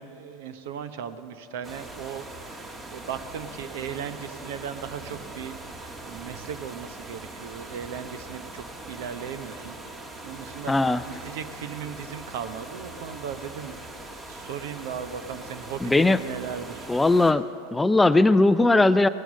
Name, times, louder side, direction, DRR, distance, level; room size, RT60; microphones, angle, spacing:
voice 1, 0.0-5.6 5.8-9.8 10.2-13.8 14.3-16.9, right 8 dB, 70° right, 11 dB, 0.9 m, -37 dB
sound 1, 1.6-17.3, right 2 dB, 25° right, 1.6 m, -41 dB
voice 2, 10.7-11.0 15.8-16.2 16.9-17.4 17.7-19.1, left 2 dB, 10° left, 14 dB, 0.4 m, -19 dB
18.5 x 9.2 x 6.4 m, 2.8 s
hypercardioid pair, 95°, 0 cm